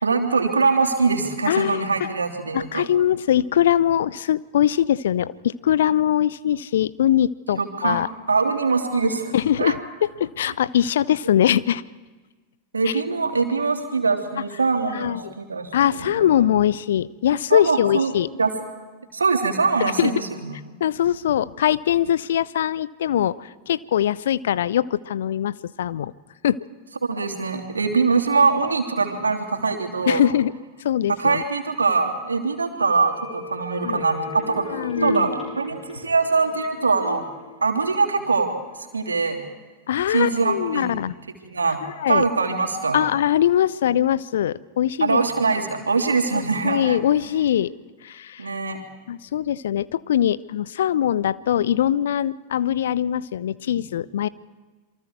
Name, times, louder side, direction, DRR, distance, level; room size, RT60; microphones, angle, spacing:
voice 1, 0.0-2.9 7.6-8.0 8.3-9.3 9.6-9.8 12.7-16.3 17.5-18.1 18.4-18.5 19.1-20.6 27.1-30.3 31.2-37.2 37.6-38.5 38.9-39.6 40.1-41.0 41.5-41.8 42.1-43.1 45.0-47.0 48.4-48.8, right 4 dB, 75° right, 3 dB, 3.0 m, -23 dB
voice 2, 1.5-1.9 2.5-8.1 9.3-11.8 14.9-15.3 15.7-18.3 20.0-20.1 20.8-26.1 26.4-26.6 30.1-30.5 30.8-31.4 33.8-34.0 34.7-35.3 39.9-41.1 41.8-42.3 42.9-45.2 46.2-47.7 48.0-48.5 49.1-54.3, left 10 dB, 60° left, 19 dB, 0.7 m, -22 dB
sound 1, 32.8-38.5 38.8-38.9, equal, 85° left, 6.1 m, -35 dB
28.0 x 24.0 x 4.6 m, 1.3 s
figure-of-eight pair, 90°, 0 cm